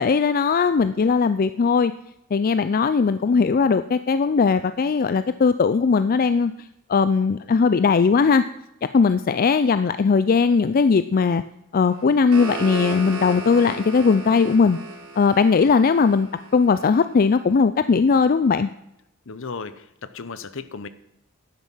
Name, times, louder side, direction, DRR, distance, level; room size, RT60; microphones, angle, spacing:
voice 1, 0.0-1.9 2.3-6.5 6.9-8.4 8.9-11.4 11.7-14.8 15.2-18.7, left 5 dB, 45° left, 12 dB, 0.4 m, -19 dB
sound 1, 11.9-17.0, right 2 dB, 90° right, 2.9 m, -35 dB
voice 2, 19.3-20.9, left 4 dB, 65° left, 14 dB, 0.8 m, -35 dB
12.0 x 9.7 x 5.6 m, 0.83 s
head